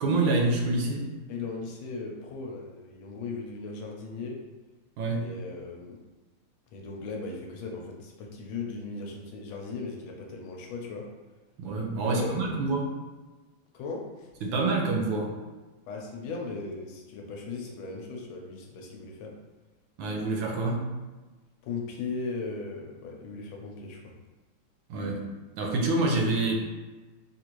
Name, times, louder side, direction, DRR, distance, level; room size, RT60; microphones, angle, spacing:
voice 1, 0.0-1.1 5.0-5.3 11.6-12.9 14.4-15.4 20.0-21.0 24.9-25.2 25.6-26.5, right 2 dB, 75° right, 1 dB, 1.4 m, -27 dB
voice 2, 1.3-4.4 5.2-6.0 6.7-11.1 12.0-12.7 13.7-14.3 15.9-19.4 21.6-24.1, left 4 dB, 85° left, 0 dB, 1.4 m, -37 dB
3.8 x 2.5 x 3.0 m, 1.2 s
omnidirectional pair, 2.2 m